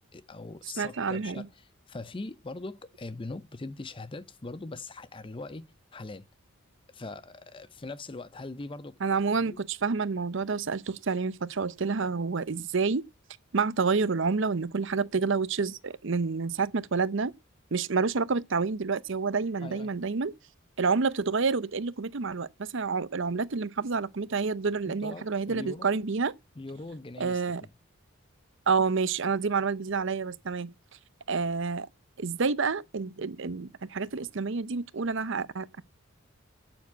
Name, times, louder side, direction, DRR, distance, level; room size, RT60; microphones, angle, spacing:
voice 1, 0.1-6.3 6.9-9.0 9.3-9.6 19.6-19.9 24.8-25.9 26.6-27.7, left 2 dB, 25° left, 0.6 m, -41 dB
voice 2, 0.8-1.4 9.0-13.0 13.5-17.3 17.7-20.3 20.8-26.3 27.2-27.6 28.7-30.7 31.3-31.9 32.2-35.8, right 4 dB, 60° right, 0.7 m, -28 dB
9.1 x 7.3 x 8.2 m
head